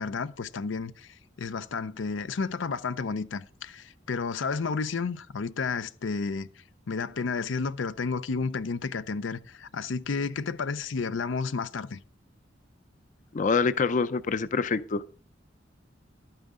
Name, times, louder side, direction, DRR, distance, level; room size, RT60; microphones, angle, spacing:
voice 1, 0.0-6.5 6.9-12.0, left 4 dB, 90° left, 0.6 m, -31 dB
voice 2, 13.3-15.0, left 4 dB, 45° left, 0.5 m, -25 dB
11.5 x 9.0 x 3.7 m
head